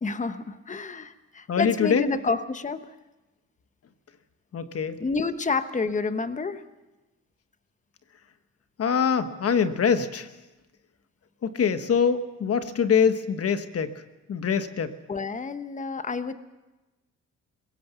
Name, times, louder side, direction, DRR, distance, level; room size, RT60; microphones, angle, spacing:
voice 1, 0.0-2.9 5.0-6.6 15.1-16.3, left 4 dB, 25° left, 11 dB, 1.1 m, -29 dB
voice 2, 1.5-2.1 4.5-4.9 8.8-10.3 11.4-13.9 14.3-14.9, left 6 dB, 50° left, 10 dB, 1.3 m, -24 dB
22.0 x 17.5 x 7.0 m, 1.1 s
cardioid pair, 90°, 30 cm